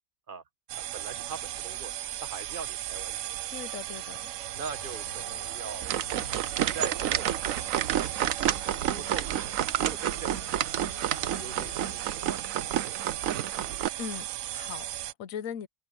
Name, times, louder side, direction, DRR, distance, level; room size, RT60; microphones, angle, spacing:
voice 1, 0.7-1.9 2.2-3.4 4.5-8.3 8.7-9.3 9.8-10.8 11.1-12.4 12.8-13.6, right 5 dB, 45° right, 1.2 m, -43 dB
sound 1, 0.7-15.1, right 13 dB, 70° right, 0.9 m, -36 dB
voice 2, 3.5-4.3 14.0-15.7, left 8 dB, 90° left, 1.2 m, -39 dB
sound 2, 4.5-12.0, left 9 dB, 75° left, 1.3 m, -50 dB
sound 3, 5.8-13.9, right 11 dB, 90° right, 1.1 m, -30 dB
omnidirectional pair, 1.4 m